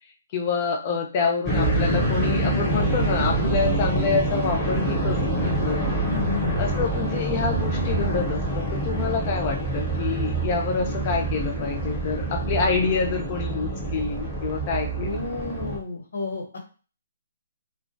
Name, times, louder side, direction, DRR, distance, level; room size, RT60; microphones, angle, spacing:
voice 1, 0.3-5.9 6.6-15.1, left 4 dB, 35° left, 3 dB, 0.5 m, -27 dB
sound 1, 1.5-15.8, right 2 dB, 5° right, 0.7 m, -26 dB
voice 2, 6.0-6.6 15.0-16.6, left 4 dB, 85° left, 2 dB, 0.9 m, -31 dB
2.2 x 2.1 x 2.6 m, 0.36 s
hypercardioid pair, 155°, 0 cm